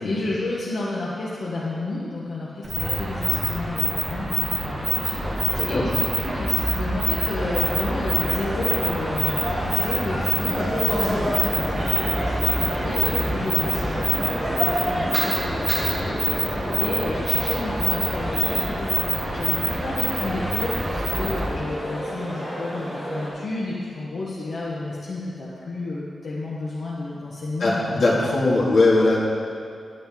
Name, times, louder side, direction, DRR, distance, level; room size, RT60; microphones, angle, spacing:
voice 1, 0.0-28.0 28.5-28.7, left 2 dB, 55° left, -7 dB, 1.3 m, -31 dB
sound 1, 2.6-21.6, right 1 dB, 20° right, 1.4 m, -25 dB
voice 2, 5.5-5.8 27.6-29.2, left 2 dB, 75° left, -7 dB, 2.6 m, -20 dB
sound 2, 7.3-23.3, equal, 5° left, 3.0 m, -32 dB
sound 3, 11.5-17.1, left 1 dB, 35° left, 2.8 m, -35 dB
11.0 x 10.5 x 3.8 m, 2.4 s
wide cardioid pair, 155°, 0 cm